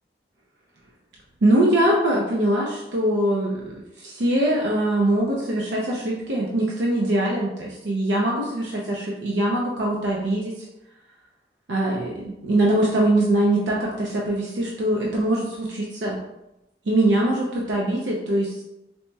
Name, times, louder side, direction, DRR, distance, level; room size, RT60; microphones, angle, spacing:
voice 1, 1.4-10.6 11.7-16.2 16.9-18.6, right 1 dB, 85° right, -3 dB, 0.5 m, -22 dB
4.1 x 2.8 x 2.2 m, 0.90 s
head